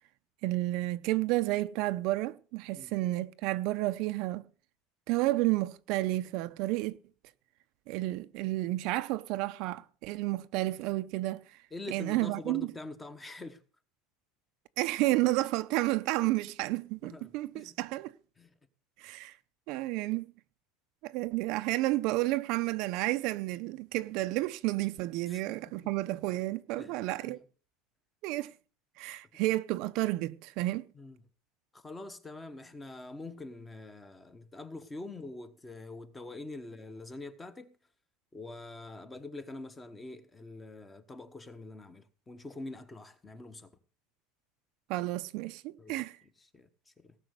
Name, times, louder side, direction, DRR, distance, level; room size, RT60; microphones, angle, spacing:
voice 1, 0.4-4.5 5.1-7.0 7.9-11.6 11.9-12.7 14.8-18.1 19.0-19.4 19.7-20.3 21.0-27.4 28.2-28.5 29.0-30.9 44.9-46.2, right 18 dB, 50° right, 0.6 m, -31 dB
voice 2, 11.7-13.6 17.0-17.7 18.4-18.5 25.3-25.4 26.8-27.0 27.2-27.4 30.9-31.2 31.7-37.8 38.3-43.7 45.8-46.0 46.5-46.7 47.0-47.1, left 2 dB, 10° left, 1.0 m, -45 dB
18.0 x 6.3 x 8.1 m
cardioid pair, 180°, 0 cm